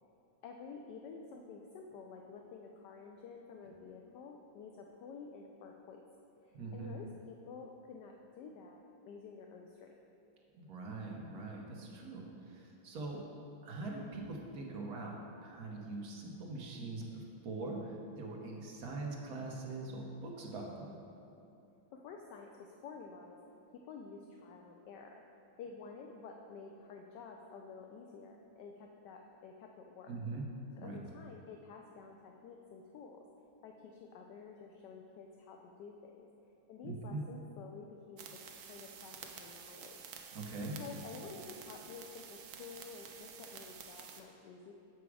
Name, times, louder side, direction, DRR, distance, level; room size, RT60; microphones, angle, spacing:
voice 1, 0.4-6.0 6.4-9.9 21.9-23.4 23.7-25.2 25.6-30.2 30.8-33.2 33.6-36.3 36.7-40.1 40.8-44.7, left 5 dB, 75° left, 2 dB, 1.0 m, -51 dB
voice 2, 6.5-6.9 10.5-13.3 13.6-20.9 30.1-30.5 30.8-31.0 36.8-37.2 40.3-40.8, right 3 dB, 55° right, -1 dB, 1.2 m, -42 dB
sound 1, 38.2-44.2, right 7 dB, 75° right, 0.8 m, -51 dB
7.0 x 6.0 x 4.7 m, 2.9 s
omnidirectional pair, 2.3 m